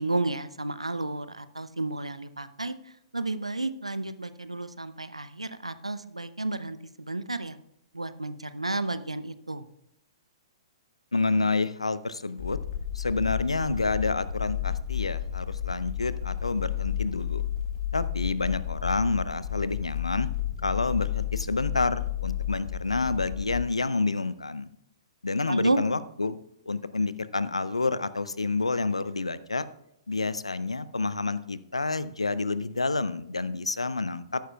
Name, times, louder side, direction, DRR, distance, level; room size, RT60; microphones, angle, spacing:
voice 1, 0.0-2.7 3.1-7.6 7.9-9.7 25.5-25.8, right 2 dB, 90° right, 13 dB, 0.6 m, -31 dB
voice 2, 11.1-12.6 12.9-17.4 17.9-20.3 20.6-24.7 25.2-26.4 26.7-29.7 30.1-34.4, left 3 dB, 85° left, 16 dB, 0.5 m, -28 dB
sound 1, 12.4-23.6, left 10 dB, 50° left, 1.2 m, -32 dB
14.0 x 10.5 x 2.3 m, 0.77 s
figure-of-eight pair, 115°, 3 cm